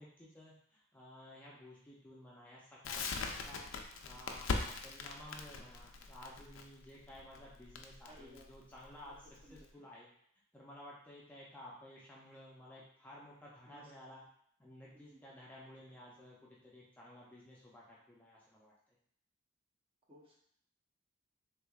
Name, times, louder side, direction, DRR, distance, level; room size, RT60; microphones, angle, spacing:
voice 1, 0.0-3.7 4.0-10.1 10.5-14.2 14.6-18.7, left 1 dB, 10° left, -6 dB, 0.4 m, -54 dB
Crackle, 2.8-9.7, left 4 dB, 80° left, 0.4 m, -41 dB
voice 2, 8.0-8.5 9.0-9.2 9.4-9.7 13.6-14.2 14.9-15.4 20.1-20.4, equal, 30° right, -3 dB, 0.7 m, -59 dB
3.5 x 3.2 x 2.3 m, 0.68 s
head